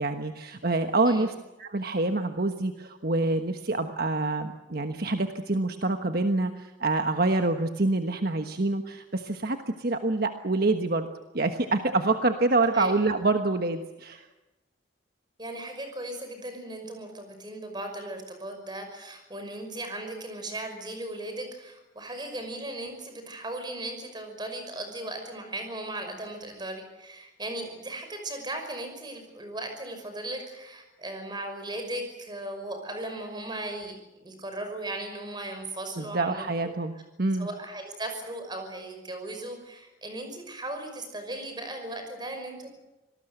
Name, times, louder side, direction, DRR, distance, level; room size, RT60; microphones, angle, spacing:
voice 1, 0.0-11.1 11.3-14.3 36.0-36.9 37.2-37.5, right 2 dB, 55° right, 6 dB, 1.3 m, -26 dB
voice 2, 15.4-36.7 37.3-42.7, right 1 dB, 25° right, 6 dB, 5.7 m, -37 dB
26.0 x 19.0 x 8.0 m, 1.0 s
head